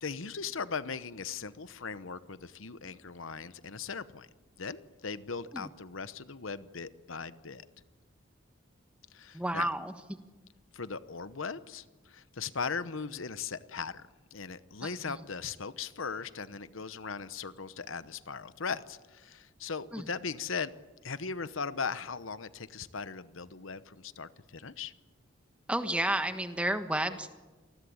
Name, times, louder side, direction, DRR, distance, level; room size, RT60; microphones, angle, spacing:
voice 1, 0.0-4.3 4.6-7.7 9.1-9.7 10.7-20.7 21.0-24.9, left 5 dB, 75° left, 14 dB, 1.0 m, -38 dB
voice 2, 9.3-9.9 14.8-15.2 19.9-20.0 25.7-27.3, right 1 dB, 5° right, 8 dB, 1.3 m, -31 dB
28.0 x 19.5 x 8.7 m, 1.2 s
head